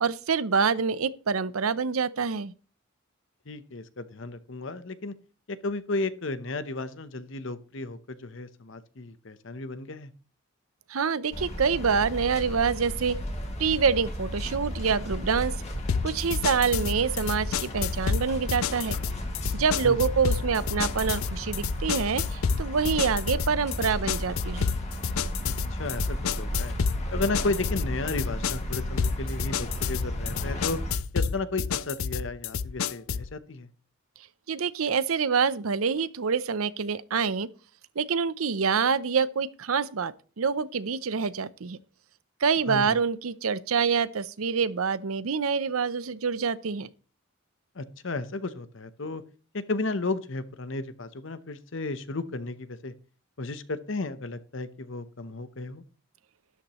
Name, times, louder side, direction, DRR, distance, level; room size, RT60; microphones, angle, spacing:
voice 1, 0.0-2.5 10.9-13.2 13.6-15.5 16.0-19.0 19.5-24.7 34.5-37.5 38.0-41.8 42.4-46.9, right 5 dB, 85° right, 0.7 m, -26 dB
voice 2, 3.5-5.1 5.5-10.1 19.8-20.0 25.4-26.8 27.1-30.8 31.1-33.7 42.7-43.0 47.7-49.2 49.5-52.9 53.4-55.8, left 2 dB, 65° left, 0.9 m, -33 dB
sound 1, 11.3-30.9, equal, 30° left, 2.2 m, -34 dB
sound 2, 15.9-33.3, left 6 dB, 80° left, 0.5 m, -30 dB
12.5 x 11.5 x 3.1 m
head